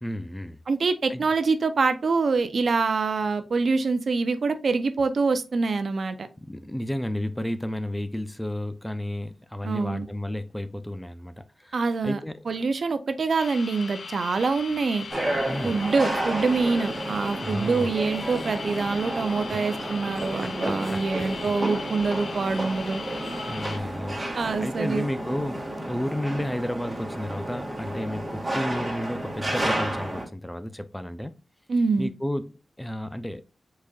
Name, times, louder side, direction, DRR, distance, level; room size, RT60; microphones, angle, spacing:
voice 1, 0.0-0.6 1.1-1.2 6.4-12.4 15.4-15.8 17.4-17.9 19.5-19.6 20.4-21.0 23.4-31.4 32.0-33.4, left 1 dB, 10° left, 0.5 m, -32 dB
voice 2, 0.7-6.2 9.6-10.1 11.7-12.2 12.5-15.1 15.6-23.0 24.3-25.1 31.7-32.1, right 4 dB, 65° right, 0.5 m, -25 dB
sound 1, 13.4-23.8, left 4 dB, 70° left, 0.5 m, -39 dB
sound 2, 15.1-30.2, right 1 dB, 25° right, 1.9 m, -31 dB
4.9 x 4.1 x 2.3 m
cardioid pair, 55°, 0 cm